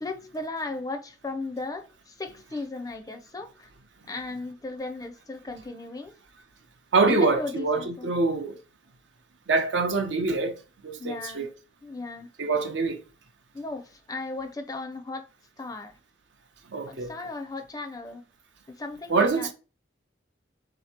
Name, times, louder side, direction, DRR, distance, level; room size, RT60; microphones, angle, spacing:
voice 1, 0.0-3.7 4.1-6.1 7.1-8.1 11.0-11.5 11.8-12.3 13.5-15.3 15.6-15.9 16.9-18.2 18.8-19.5, left 3 dB, 20° left, 0.4 m, -36 dB
voice 2, 6.9-8.6 9.5-10.5 10.8-11.5 12.4-13.0 16.7-17.1 19.1-19.5, right 3 dB, 80° right, 0.7 m, -25 dB
3.5 x 2.8 x 4.3 m
head